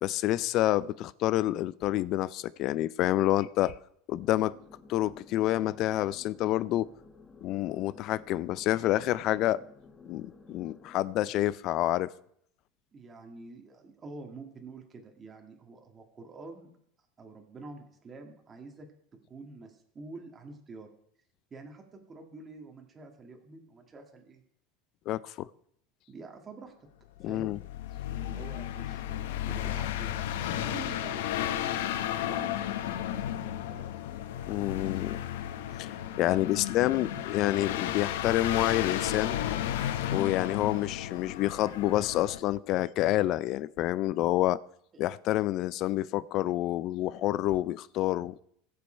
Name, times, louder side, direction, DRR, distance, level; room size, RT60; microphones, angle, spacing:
voice 1, 0.0-3.7 4.1-4.5 4.9-6.9 7.4-9.6 10.1-12.1 25.1-25.5 27.2-27.6 34.5-35.2 35.8-35.9 36.2-39.4 40.1-44.6 45.0-48.4, left 15 dB, 45° left, 0.5 m, -28 dB
sound 1, 4.2-11.0, left 4 dB, 20° left, 1.1 m, -54 dB
voice 2, 12.9-16.7 17.2-18.9 19.3-20.9 21.5-24.4 26.1-26.7 27.2-27.6 28.1-32.8 33.7-33.9 37.2-37.3, right 3 dB, 20° right, 2.0 m, -47 dB
sound 2, 27.2-42.4, left 11 dB, 85° left, 0.8 m, -33 dB
20.5 x 6.9 x 4.5 m
supercardioid pair, 145°, 0 cm